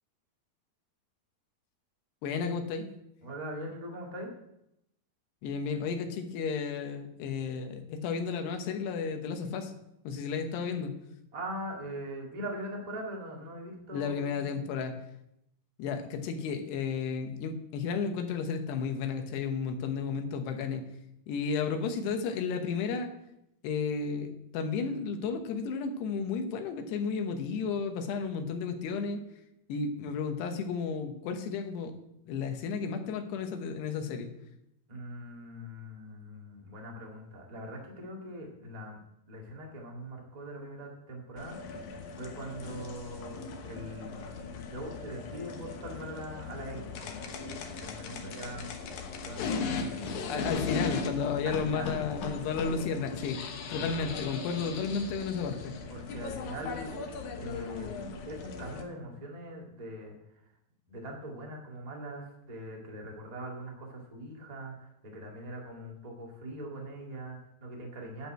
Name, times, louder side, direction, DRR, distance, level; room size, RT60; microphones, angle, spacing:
voice 1, 2.2-2.8 5.4-9.7 10.0-10.9 13.9-15.0 15.8-20.8 21.3-23.1 23.6-29.2 29.7-31.9 32.3-34.3 50.3-53.4 53.7-55.7, left 5 dB, 90° left, 5 dB, 3.2 m, -33 dB
voice 2, 3.2-4.3 11.3-14.7 34.9-39.0 39.3-48.9 49.2-50.7 51.4-51.9 53.7-53.9 55.9-60.2 60.9-68.3, right 1 dB, 25° right, -1 dB, 0.8 m, -42 dB
sound 1, 41.4-58.8, left 4 dB, 65° left, 2.0 m, -38 dB
11.0 x 5.6 x 7.6 m, 0.81 s
omnidirectional pair, 4.6 m